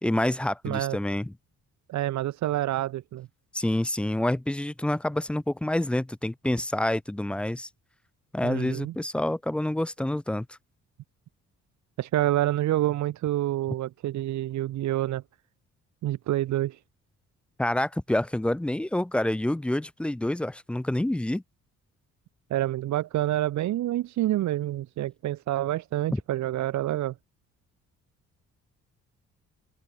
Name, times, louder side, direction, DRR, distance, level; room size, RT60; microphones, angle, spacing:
voice 1, 0.0-1.3 3.5-7.7 8.3-10.5 17.6-21.4 26.1-26.2, left 1 dB, 5° left, 0.4 m, -27 dB
voice 2, 0.6-1.0 1.9-3.3 8.4-8.9 12.0-15.2 16.0-16.8 22.5-27.1, right 14 dB, 70° right, 0.8 m, -27 dB
open air
cardioid pair, 90°, 30 cm